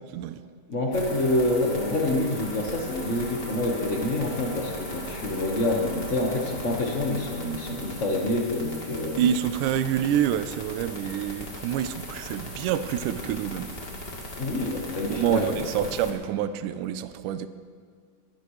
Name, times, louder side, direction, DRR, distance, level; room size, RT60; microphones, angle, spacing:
voice 1, 0.7-9.3 14.4-15.6, left 1 dB, 85° left, 0 dB, 0.6 m, -27 dB
sound 1, 0.9-16.1, left 1 dB, 25° left, 1.7 m, -38 dB
voice 2, 9.2-13.7 15.1-17.5, right 10 dB, 80° right, 11 dB, 2.1 m, -27 dB
23.0 x 17.0 x 3.3 m, 2.1 s
omnidirectional pair, 3.8 m